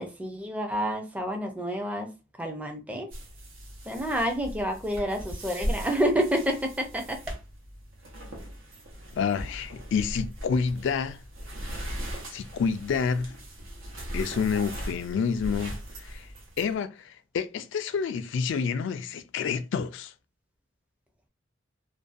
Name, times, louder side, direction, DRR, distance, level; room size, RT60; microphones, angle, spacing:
voice 1, 0.0-2.1 2.4-3.1 3.9-7.2, equal, 5° right, 0.5 m, -29 dB
sound 1, 3.1-16.7, equal, 90° right, 0.9 m, -38 dB
voice 2, 9.1-11.2 12.3-13.4 14.1-16.3 16.6-20.1, left 6 dB, 65° left, 0.3 m, -29 dB
2.6 x 2.2 x 2.4 m
head